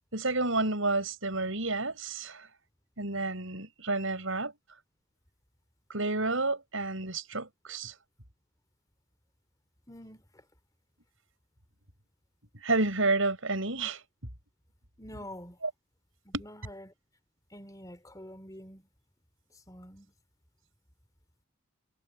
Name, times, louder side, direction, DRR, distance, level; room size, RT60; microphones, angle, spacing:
voice 1, 0.1-2.5 3.0-4.5 5.9-7.9 12.5-14.0 16.3-16.4, right 2 dB, 70° right, 6.2 m, -30 dB
voice 2, 9.9-10.4 15.0-15.6 16.2-16.9 17.5-18.9 19.7-20.1, left 1 dB, 15° left, 4.0 m, -47 dB
head